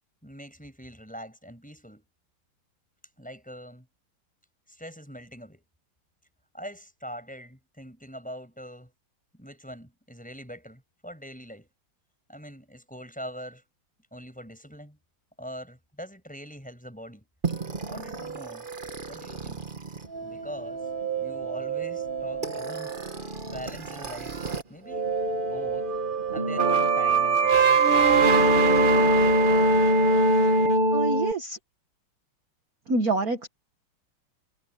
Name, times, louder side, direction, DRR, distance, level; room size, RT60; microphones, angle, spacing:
voice 1, 0.2-2.0 3.2-3.9 4.7-5.6 6.5-8.9 9.3-11.7 12.3-13.6 14.1-15.0 15.4-17.3 17.9-18.7 19.1-19.6 20.2-20.9 21.2-23.0 23.4-24.4 24.7-25.1 25.5-25.9 26.3-27.7, equal, 5° left, 5.7 m, -42 dB
sound 1, 17.4-24.6 24.9-31.3, right 2 dB, 25° right, 1.3 m, -24 dB
voice 2, 30.9-31.6 32.9-33.5, right 2 dB, 45° right, 2.0 m, -26 dB
omnidirectional pair, 2.4 m